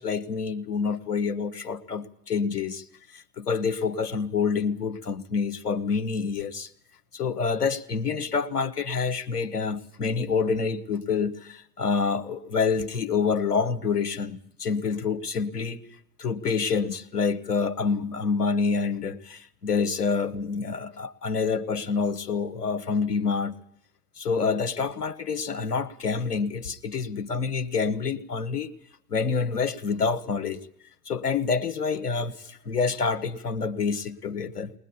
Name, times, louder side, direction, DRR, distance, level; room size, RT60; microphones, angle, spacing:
voice 1, 0.0-2.8 3.1-6.7 7.1-15.8 16.2-23.5 24.2-28.7 29.1-30.6 31.1-34.7, left 5 dB, 80° left, 9 dB, 1.5 m, -27 dB
20.5 x 20.5 x 8.5 m, 0.68 s
figure-of-eight pair, 70°, 46 cm